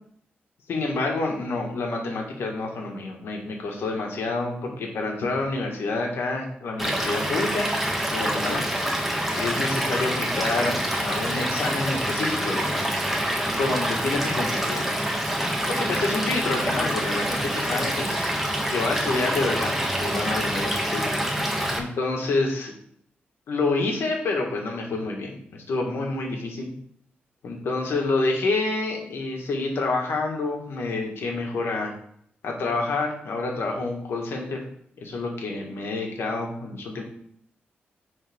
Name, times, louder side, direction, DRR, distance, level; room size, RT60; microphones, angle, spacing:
voice 1, 0.7-7.7 8.1-8.9 9.4-12.9 13.5-14.9 15.7-18.3 18.7-21.2 21.8-22.7 23.5-25.4 25.7-26.7 27.4-31.9 32.4-34.6 35.0-37.0, left 3 dB, 80° left, 1 dB, 1.7 m, -28 dB
Stream / Liquid, 6.8-21.8, equal, 5° right, 1.3 m, -26 dB
10.0 x 3.9 x 3.6 m, 0.66 s
wide cardioid pair, 110°, 4 cm